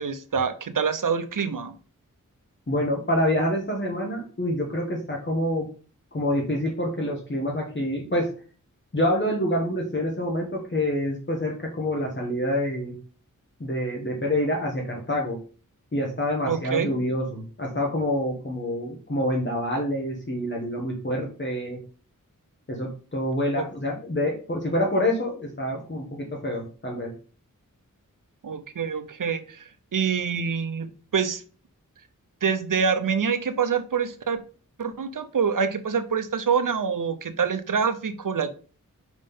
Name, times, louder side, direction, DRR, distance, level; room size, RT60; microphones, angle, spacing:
voice 1, 0.0-1.7 16.5-16.9 23.5-23.7 28.4-31.4 32.4-34.4 34.8-38.5, right 6 dB, 70° right, 11 dB, 0.8 m, -26 dB
voice 2, 2.7-5.7 6.1-8.3 8.9-13.0 13.6-15.4 15.9-21.8 22.7-27.1, left 1 dB, 35° left, -1 dB, 1.3 m, -27 dB
5.2 x 3.7 x 5.5 m, 0.39 s
wide cardioid pair, 90°, 33 cm